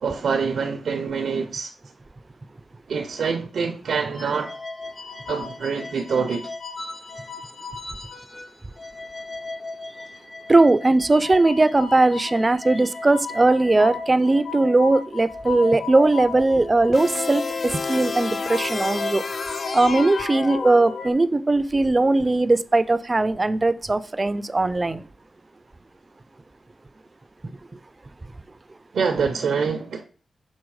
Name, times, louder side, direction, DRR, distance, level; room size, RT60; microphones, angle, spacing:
voice 1, 0.0-1.7 2.9-4.5 5.3-6.5 28.9-30.0, right 5 dB, 80° right, 0.6 m, -25 dB
sound 1, 4.2-8.5 8.8-21.1, left 4 dB, 35° left, 0.8 m, -36 dB
voice 2, 10.5-19.2 19.5-25.0, right 2 dB, 30° right, 0.5 m, -19 dB
sound 2, 16.9-21.3, left 4 dB, 50° left, 0.3 m, -30 dB
6.3 x 4.1 x 4.8 m
cardioid pair, 70°, 0 cm